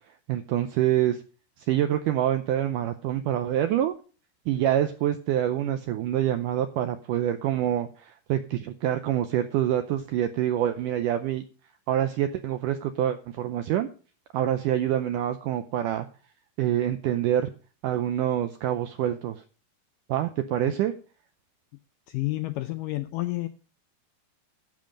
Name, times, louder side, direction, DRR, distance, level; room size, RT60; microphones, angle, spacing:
voice 1, 0.3-1.2 1.6-3.9 4.5-11.4 11.9-13.9 14.3-16.1 16.6-17.5 17.8-19.4 20.1-20.9, right 11 dB, 85° right, 8 dB, 1.9 m, -26 dB
voice 2, 22.1-23.5, left 19 dB, 80° left, 9 dB, 1.9 m, -30 dB
12.0 x 7.8 x 5.1 m, 0.36 s
omnidirectional pair, 4.5 m